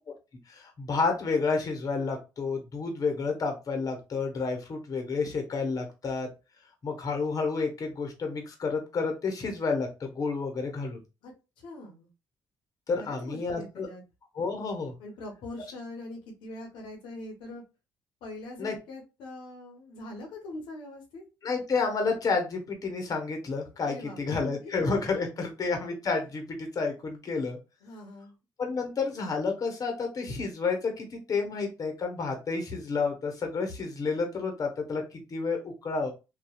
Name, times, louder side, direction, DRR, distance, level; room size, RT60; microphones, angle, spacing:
voice 1, 0.5-6.3 6.8-11.0 12.9-13.9 14.4-14.9 18.6-18.8 21.4-27.6 28.6-36.1, left 4 dB, 45° left, 4 dB, 0.9 m, -30 dB
voice 2, 11.2-12.1 13.0-14.0 15.0-17.6 18.2-21.2 23.9-24.4 24.6-24.8 25.4-25.5 27.8-28.3, left 2 dB, 80° left, 1 dB, 0.8 m, -42 dB
2.8 x 2.3 x 2.3 m, 0.28 s
supercardioid pair, 65°, 8 cm